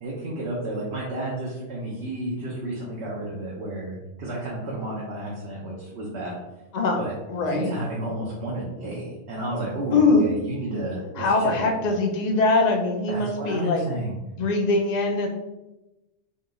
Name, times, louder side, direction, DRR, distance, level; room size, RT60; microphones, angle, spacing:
voice 1, 0.0-6.3 6.9-7.1 7.5-11.6 13.1-14.1, right 1 dB, 60° right, -4 dB, 1.1 m, -31 dB
voice 2, 7.3-7.7 9.9-10.3 11.2-13.8 14.4-15.3, left 3 dB, 45° left, 2 dB, 0.6 m, -22 dB
4.1 x 2.8 x 3.7 m, 1.0 s
omnidirectional pair, 1.3 m